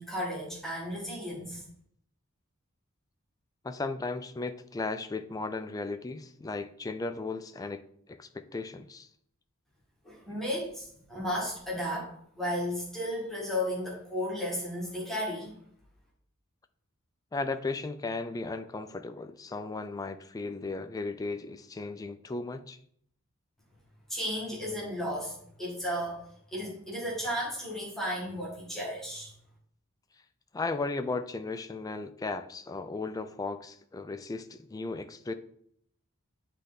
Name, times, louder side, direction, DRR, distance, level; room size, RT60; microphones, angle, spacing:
voice 1, 0.0-1.6 10.0-15.6 24.1-26.2 26.5-29.3, equal, ahead, 1.8 m, -34 dB
voice 2, 3.6-9.1 10.3-10.4 17.3-22.8 30.5-35.3, left 3 dB, 15° left, 0.3 m, -36 dB
8.1 x 3.3 x 4.0 m
head